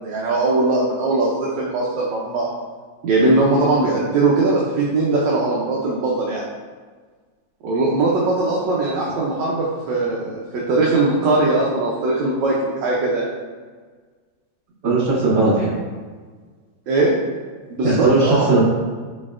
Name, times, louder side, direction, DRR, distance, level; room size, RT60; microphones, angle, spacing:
voice 1, 0.0-2.5 3.0-6.4 7.6-13.3 16.9-17.1 17.7-18.6, right 2 dB, 75° right, -4 dB, 1.2 m, -20 dB
voice 2, 14.8-15.7 17.8-18.6, right 3 dB, 60° right, -9 dB, 2.1 m, -17 dB
4.1 x 4.1 x 2.4 m, 1.5 s
omnidirectional pair, 2.1 m